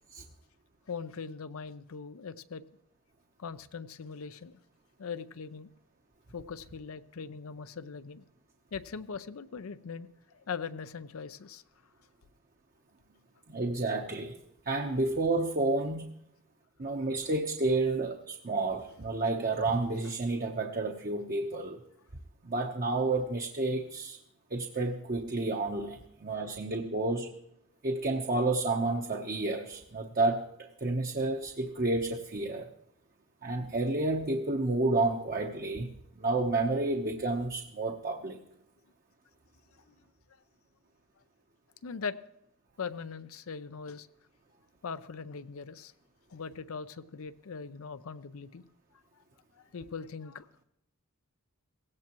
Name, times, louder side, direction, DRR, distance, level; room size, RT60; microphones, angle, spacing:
voice 1, 0.9-2.6 3.4-4.5 5.0-5.7 6.3-8.2 8.7-10.1 10.3-11.6 39.9-40.0 41.8-42.2 42.8-44.1 44.8-45.9 46.3-48.6 49.5-50.5, left 5 dB, 75° left, 12 dB, 0.5 m, -40 dB
voice 2, 13.5-14.4 14.7-16.1 16.8-21.8 22.4-24.2 24.5-27.3 27.8-32.7 33.4-35.9 36.2-38.4, right 2 dB, 40° right, 2 dB, 0.8 m, -30 dB
17.5 x 16.5 x 3.0 m, 0.81 s
head